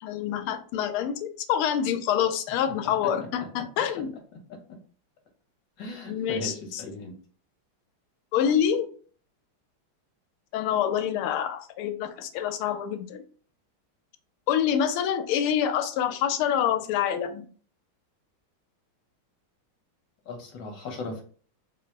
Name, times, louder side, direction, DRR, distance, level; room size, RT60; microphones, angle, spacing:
voice 1, 0.0-4.1 6.1-6.8 8.3-8.9 10.5-13.2 14.5-17.5, left 9 dB, 90° left, 8 dB, 1.5 m, -26 dB
voice 2, 4.3-4.8 5.8-7.1 20.3-21.2, left 2 dB, 60° left, 2 dB, 1.4 m, -38 dB
4.3 x 2.0 x 4.4 m, 0.43 s
omnidirectional pair, 2.3 m